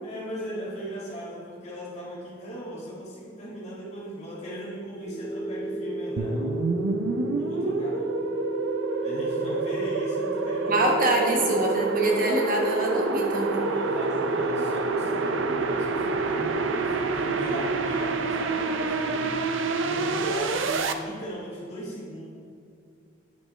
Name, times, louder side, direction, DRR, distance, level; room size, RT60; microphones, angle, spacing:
voice 1, 0.0-6.5 7.4-8.1 9.0-10.9 11.1-11.4 13.6-19.4 19.8-22.3, equal, 35° left, -6 dB, 2.2 m, -37 dB
sound 1, 5.0-16.8, right 2 dB, 80° left, 2.0 m, -33 dB
sound 2, 6.2-20.9, right 3 dB, 75° right, 0.5 m, -28 dB
voice 2, 10.7-13.6, right 1 dB, 45° right, 0 dB, 1.1 m, -25 dB
9.5 x 7.4 x 3.3 m, 2.4 s
head